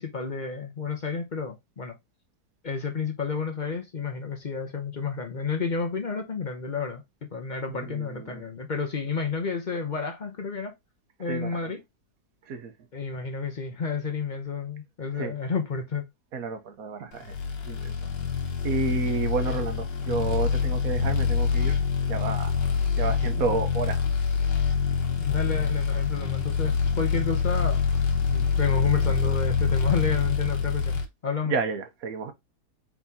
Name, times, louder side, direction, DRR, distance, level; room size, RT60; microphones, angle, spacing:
voice 1, 0.0-2.0 2.6-7.0 7.3-10.7 11.2-11.8 12.9-16.0 25.1-27.8 28.3-31.5, left 5 dB, 45° left, 0.6 m, -30 dB
voice 2, 7.7-8.5 11.2-11.6 12.5-12.7 15.1-15.4 16.3-17.4 17.7-18.1 18.6-21.8 22.1-22.5 23.0-24.0 31.5-32.3, right 4 dB, 60° right, 1.2 m, -31 dB
sound 1, 17.3-31.0, left 6 dB, 90° left, 1.7 m, -25 dB
4.6 x 4.0 x 2.7 m
omnidirectional pair, 1.8 m